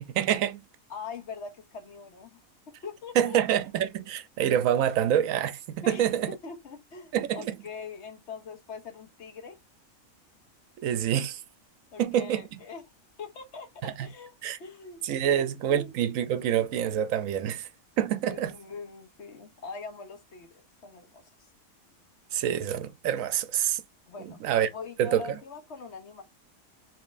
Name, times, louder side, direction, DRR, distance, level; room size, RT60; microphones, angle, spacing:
voice 1, 0.1-0.6 3.2-6.3 7.1-7.5 10.8-11.4 12.0-12.4 13.8-14.1 14.4-14.6 15.0-17.7 18.0-18.5 22.3-23.8 24.2-24.7 25.0-25.2, right 10 dB, 75° right, 0.9 m, -26 dB
voice 2, 0.9-2.4 2.7-3.4 5.8-9.6 11.9-12.8 13.2-15.9 18.3-21.3 24.1-24.4 24.7-26.2, left 4 dB, 55° left, 1.1 m, -42 dB
5.1 x 3.2 x 2.5 m
omnidirectional pair, 1.5 m